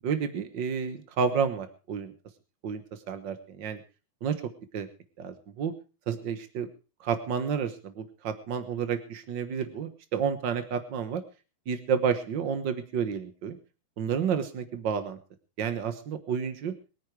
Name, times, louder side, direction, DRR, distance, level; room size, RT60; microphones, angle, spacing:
voice 1, 0.0-2.1 2.6-3.8 4.2-4.4 4.7-4.9 5.2-5.7 6.1-6.7 7.0-11.2 11.7-13.6 14.0-15.2 15.6-16.7, right 7 dB, 65° right, 10 dB, 1.1 m, -30 dB
23.0 x 9.7 x 4.8 m, 0.34 s
omnidirectional pair, 3.9 m